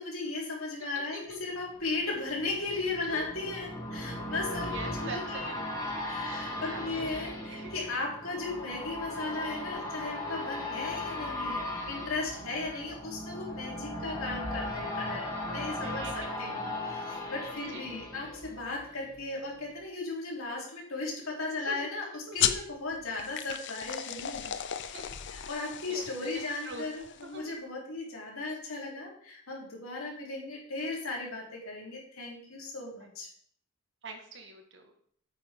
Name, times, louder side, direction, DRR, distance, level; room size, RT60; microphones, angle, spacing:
voice 1, 0.0-4.7 5.0-5.5 6.0-24.5 24.8-27.0 27.3-33.3, left 3 dB, 85° left, -3 dB, 3.8 m, -36 dB
voice 2, 0.9-1.4 3.0-3.3 4.7-7.7 11.7-12.1 12.7-12.9 15.8-16.3 16.8-17.0 17.7-17.9 21.5-21.8 22.3-22.5 24.9-25.0 25.9-26.9 27.2-27.5 34.0-34.9, right 3 dB, 60° right, 4 dB, 1.8 m, -45 dB
sound 1, 1.4-19.2 19.6-19.7, left 1 dB, 20° left, 3.4 m, -37 dB
sound 2, 22.4-27.4, left 10 dB, 60° left, 0.6 m, -35 dB
9.6 x 8.5 x 3.8 m, 0.62 s
head